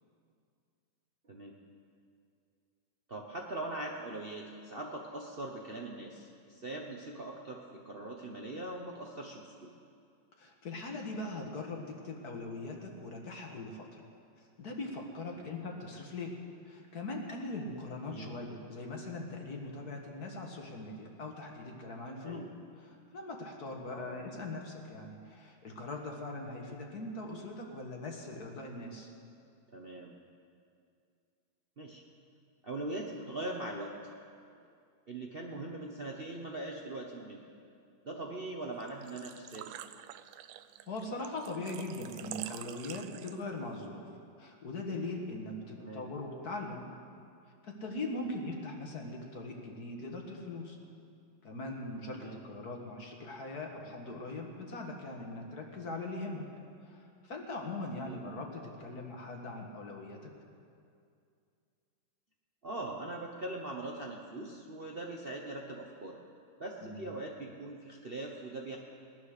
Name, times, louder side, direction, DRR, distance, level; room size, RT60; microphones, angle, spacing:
voice 1, 3.1-9.7 15.4-15.6 18.0-18.3 22.2-22.5 23.8-24.2 29.7-30.1 31.8-32.0 32.6-33.9 35.1-37.4 38.0-39.7 45.8-46.1 48.2-48.3 52.1-52.4 58.1-58.2 62.6-66.2 66.6-68.8, right 2 dB, 40° right, -1 dB, 0.9 m, -41 dB
voice 2, 10.4-14.0 14.6-16.4 16.7-22.4 22.8-29.1 40.9-44.0 44.4-46.8 47.6-50.8 51.4-56.5 56.9-60.3 66.8-67.1, left 2 dB, 50° left, 1 dB, 2.0 m, -41 dB
Engine / Trickle dribble / Fill (with liquid), 38.8-43.7, right 12 dB, 90° right, 1.4 m, -47 dB
18.5 x 11.0 x 6.6 m, 2.4 s
omnidirectional pair, 2.2 m